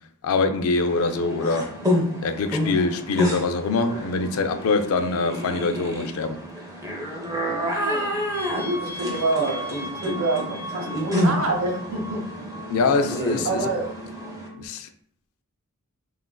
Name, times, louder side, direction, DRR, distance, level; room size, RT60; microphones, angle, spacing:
voice 1, 0.2-1.7 2.2-6.4 12.7-13.6 14.6-14.9, left 3 dB, 70° left, 0.3 m, -24 dB
sound 1, 0.8-14.5, left 1 dB, 15° right, 0.5 m, -29 dB
voice 2, 7.4-8.2 8.5-12.3 13.4-13.9, right 2 dB, 65° right, 0.7 m, -27 dB
sound 2, 8.2-14.7, equal, 90° left, 0.7 m, -37 dB
3.6 x 2.4 x 2.2 m
head